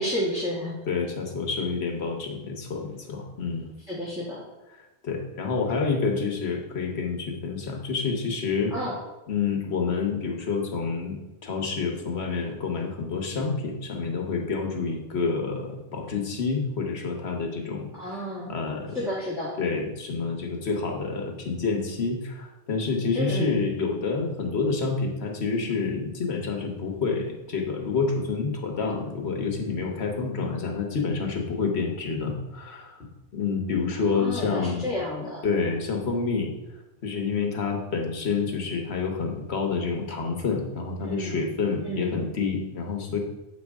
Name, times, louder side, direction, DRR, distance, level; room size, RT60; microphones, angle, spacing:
voice 1, 0.0-0.7 3.9-4.4 8.7-9.0 18.0-18.6 18.9-19.5 23.1-23.6 34.1-35.4 41.0-41.4 41.9-42.2, left 1 dB, 5° right, -8 dB, 1.4 m, -31 dB
voice 2, 0.9-3.7 5.0-8.7 9.3-19.0 19.6-33.1 33.3-34.9 35.4-36.5 37.0-43.2, left 4 dB, 70° left, 2 dB, 1.4 m, -28 dB
7.9 x 5.3 x 3.6 m, 1.0 s
omnidirectional pair, 1.2 m